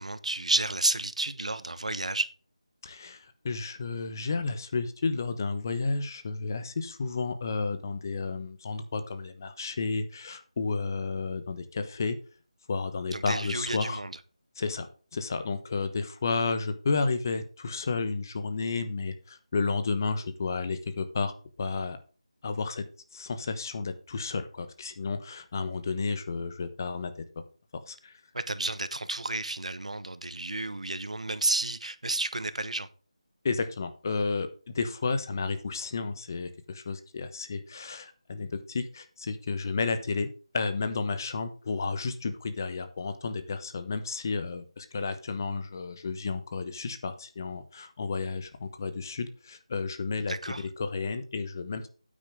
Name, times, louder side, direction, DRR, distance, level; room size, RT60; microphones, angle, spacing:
voice 1, 0.0-2.3 13.1-14.2 28.3-32.9 50.3-50.7, right 2 dB, 85° right, 1.1 m, -31 dB
voice 2, 2.8-12.2 12.7-14.0 14.6-14.9 15.1-21.3 21.6-22.0 22.4-22.8 23.1-27.2 27.9-28.2 33.4-34.5 34.7-40.3 40.5-50.3 50.8-51.9, left 4 dB, 30° left, 1.0 m, -32 dB
9.1 x 8.9 x 3.6 m
figure-of-eight pair, 170°, 3 cm